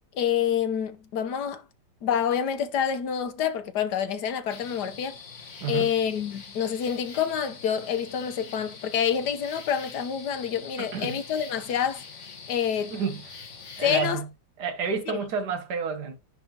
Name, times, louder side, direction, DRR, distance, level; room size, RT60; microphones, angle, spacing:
voice 1, 0.1-1.6 2.0-5.2 5.7-12.9 13.8-14.2, left 8 dB, 70° left, 1.4 m, -27 dB
sound 1, 4.5-14.1, left 5 dB, 45° left, 1.5 m, -44 dB
voice 2, 5.6-5.9 10.8-11.2 12.9-13.4 13.8-14.3 14.6-16.2, right 5 dB, 65° right, 1.8 m, -30 dB
9.9 x 4.1 x 2.9 m
omnidirectional pair, 1.9 m